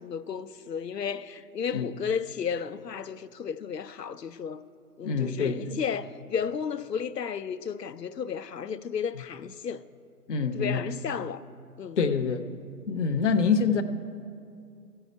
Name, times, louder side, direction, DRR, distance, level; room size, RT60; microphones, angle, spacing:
voice 1, 0.0-4.6 5.0-9.8 10.5-11.4 11.8-12.0, left 7 dB, 80° left, 0.6 m, -33 dB
voice 2, 5.0-5.8 9.1-9.2 10.3-11.0 12.0-12.4 12.9-13.8, left 5 dB, 45° left, 0.7 m, -26 dB
14.0 x 5.6 x 9.0 m
figure-of-eight pair, 135°, 48 cm